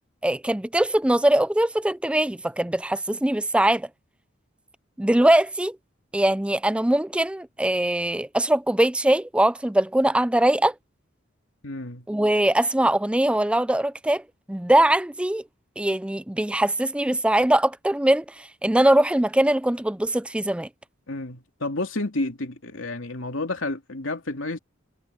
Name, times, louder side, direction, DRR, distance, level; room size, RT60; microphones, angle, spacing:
voice 1, 0.2-3.9 5.0-5.8 6.1-10.7 12.1-14.2 14.5-15.4 15.8-20.7, right 1 dB, 5° right, 0.4 m, -21 dB
voice 2, 11.6-12.0 21.1-24.6, left 2 dB, 85° left, 2.8 m, -30 dB
head